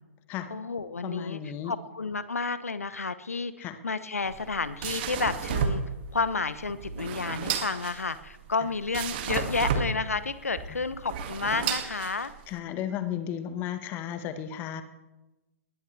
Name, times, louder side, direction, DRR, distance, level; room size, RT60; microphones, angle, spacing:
voice 1, 0.5-1.4 1.6-5.8 6.1-12.3, left 4 dB, 80° left, 13 dB, 1.1 m, -31 dB
voice 2, 1.0-1.7 3.6-3.8 12.5-14.8, left 10 dB, 25° left, 10 dB, 1.4 m, -34 dB
sound 1, 4.2-12.6, right 6 dB, 40° right, 2.2 m, -32 dB
20.5 x 20.0 x 3.4 m, 1.1 s
figure-of-eight pair, 125°, 8 cm